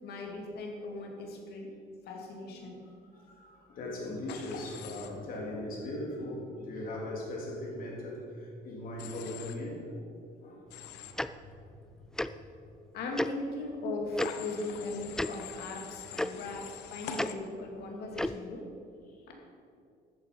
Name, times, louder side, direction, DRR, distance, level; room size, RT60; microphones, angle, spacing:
voice 1, 0.0-1.7 2.1-2.8 12.9-18.7 19.3-19.4, left 2 dB, 70° left, 1 dB, 2.7 m, -38 dB
voice 2, 2.4-10.1 10.4-10.6 12.3-12.4 14.1-14.7 16.3-16.6, left 1 dB, 55° left, -2 dB, 3.6 m, -40 dB
Human voice / Train, 4.3-5.1 9.0-9.5 10.7-11.1 14.2-17.3, left 8 dB, 90° left, 1.0 m, -44 dB
Tick-tock, 11.2-11.3 12.2-12.3 13.2-13.3 14.2-14.3 15.1-15.3 16.2-16.3 17.2-17.3 18.1-18.4, left 1 dB, 5° left, 0.3 m, -31 dB
13.5 x 8.8 x 5.6 m, 2.4 s
cardioid pair, 110°, 17 cm